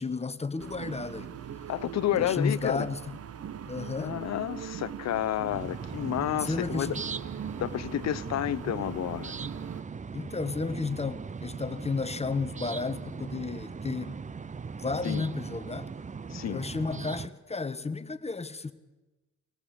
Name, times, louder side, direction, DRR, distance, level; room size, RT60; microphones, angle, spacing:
voice 1, 0.0-1.4 2.1-3.0 3.7-4.2 6.4-7.0 10.1-14.2 14.8-15.9 16.3-18.7, left 4 dB, 20° left, 1.3 m, -32 dB
sound 1, 0.6-9.8, right 9 dB, 50° right, 1.1 m, -41 dB
voice 2, 1.7-2.9 4.0-7.0 7.6-9.3 15.0-15.3 16.3-16.6, left 12 dB, 60° left, 0.8 m, -30 dB
sound 2, 5.5-17.3, right 5 dB, 25° right, 0.7 m, -39 dB
24.0 x 17.5 x 8.1 m
cardioid pair, 90°, 30 cm